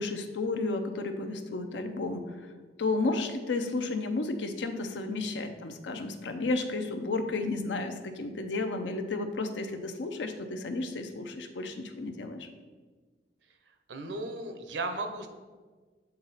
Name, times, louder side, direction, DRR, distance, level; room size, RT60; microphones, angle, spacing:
voice 1, 0.0-2.3 2.8-12.5, left 3 dB, 90° left, 7 dB, 0.6 m, -32 dB
voice 2, 13.9-15.3, right 2 dB, 90° right, 7 dB, 0.7 m, -35 dB
8.0 x 3.9 x 4.0 m, 1.4 s
head